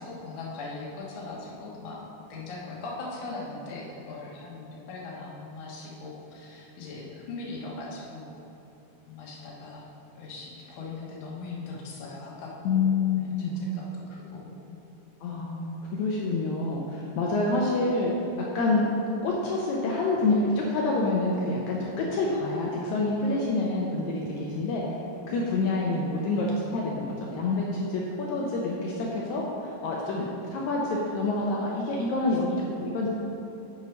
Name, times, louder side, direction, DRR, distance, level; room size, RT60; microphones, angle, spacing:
voice 1, 0.0-2.0 2.3-8.3 9.0-14.8 25.1-25.6 30.1-30.4, left 3 dB, 60° left, -5 dB, 1.4 m, -40 dB
voice 2, 12.6-13.5 15.2-18.1 18.5-18.9 19.2-24.8 25.3-30.2 30.5-33.1, left 3 dB, 85° left, -3 dB, 1.6 m, -27 dB
7.5 x 5.3 x 5.2 m, 2.8 s
omnidirectional pair, 4.2 m